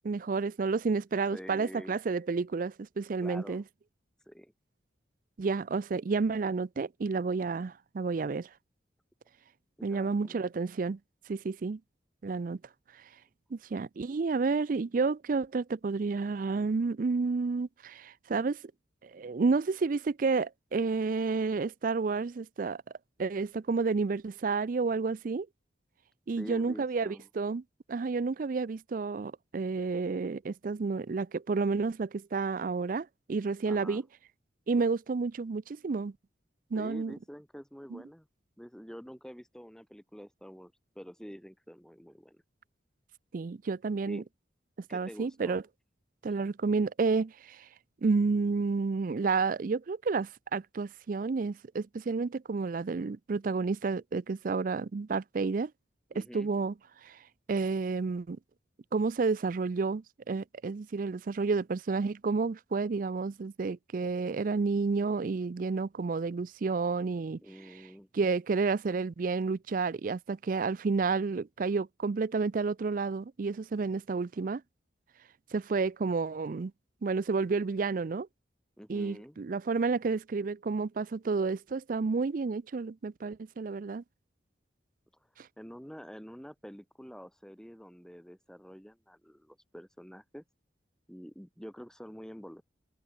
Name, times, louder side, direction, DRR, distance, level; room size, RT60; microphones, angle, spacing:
voice 1, 0.0-3.6 5.4-8.5 9.8-11.0 11.3-11.8 12.2-12.6 13.5-18.6 19.0-22.8 23.2-25.5 26.3-27.6 27.9-34.0 34.7-36.1 36.7-37.1 37.9-38.0 43.3-44.2 44.9-45.6 46.2-47.7 48.0-55.7 56.3-56.7 57.0-57.2 57.5-58.4 58.9-67.4 68.1-74.6 75.5-76.7 77.0-78.3 78.9-84.0 85.4-85.5, right 4 dB, 45° right, 0.4 m, -30 dB
voice 2, 1.3-2.0 3.2-3.6 4.3-4.5 9.8-10.5 26.4-27.3 33.7-34.0 36.7-38.3 38.6-42.4 44.1-44.3 44.9-45.6 56.1-56.5 67.4-68.1 78.8-79.4 85.6-90.4 91.1-92.6, equal, 5° left, 2.5 m, -47 dB
head